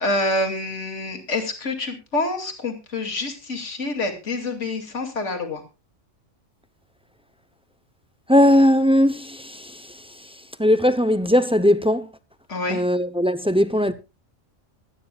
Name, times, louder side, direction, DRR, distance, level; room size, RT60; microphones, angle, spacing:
voice 1, 0.0-5.6 12.5-12.8, left 2 dB, 60° left, 2.8 m, -27 dB
voice 2, 8.3-10.0 10.6-12.1 12.7-13.9, equal, 5° right, 0.5 m, -19 dB
24.0 x 9.6 x 2.4 m
omnidirectional pair, 1.4 m